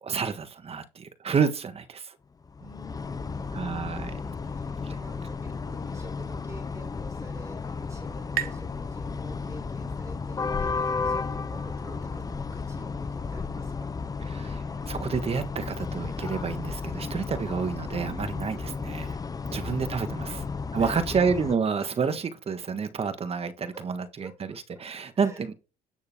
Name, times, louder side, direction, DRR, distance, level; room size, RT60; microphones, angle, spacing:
voice 1, 0.0-2.2 3.5-4.2 4.8-4.9 14.2-19.2 19.5-20.4 20.7-25.5, right 6 dB, 35° right, 1.5 m, -29 dB
sound 1, 2.4-21.6, left 4 dB, 20° left, 0.7 m, -33 dB
voice 2, 2.6-13.9 19.3-19.8 20.2-20.5 20.8-21.3 23.7-23.8 24.2-24.6 25.1-25.4, right 1 dB, 15° right, 4.9 m, -49 dB
sound 2, 6.9-10.3, right 11 dB, 65° right, 0.8 m, -39 dB
9.7 x 6.5 x 3.6 m
cardioid pair, 110°, 17 cm